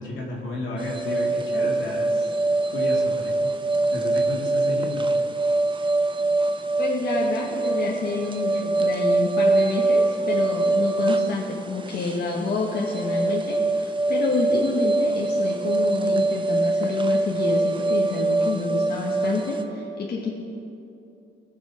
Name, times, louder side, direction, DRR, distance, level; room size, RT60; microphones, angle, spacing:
voice 1, 0.0-3.6 3.9-5.1, left 2 dB, 75° left, -2 dB, 2.3 m, -33 dB
sound 1, 0.8-19.6, right 2 dB, 25° right, 0.7 m, -24 dB
voice 2, 6.8-20.3, left 3 dB, 50° left, -3 dB, 1.4 m, -28 dB
18.5 x 6.2 x 4.3 m, 2.8 s
cardioid pair, 90°, 20 cm